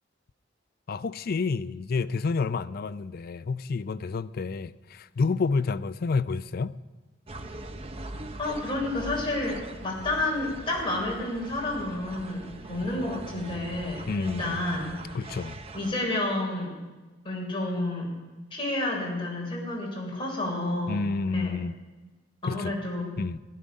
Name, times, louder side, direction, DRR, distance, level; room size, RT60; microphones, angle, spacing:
voice 1, 0.9-6.8 14.1-14.6 15.1-15.6 20.9-21.8 22.4-22.7 23.2-23.4, left 4 dB, 55° left, 0.4 m, -29 dB
sound 1, 7.3-16.0, right 2 dB, 35° right, 0.9 m, -41 dB
voice 2, 8.4-15.3 15.7-16.8 17.2-18.1 18.5-21.6 22.4-23.2, left 2 dB, 30° left, 4.2 m, -30 dB
17.5 x 11.5 x 5.3 m
head